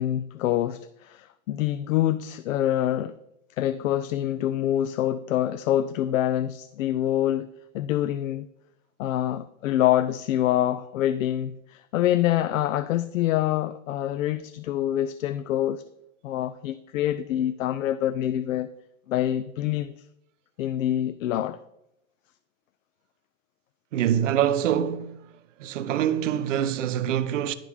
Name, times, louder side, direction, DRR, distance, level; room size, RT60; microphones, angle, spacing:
voice 1, 0.0-3.2 3.6-7.5 7.7-8.5 9.0-15.8 16.2-18.7 19.1-19.9 20.6-21.6, left 12 dB, 85° left, 0.5 m, -26 dB
voice 2, 23.9-25.3 25.6-27.5, right 10 dB, 75° right, 0.7 m, -25 dB
10.5 x 5.1 x 5.0 m
supercardioid pair, 165°, 38 cm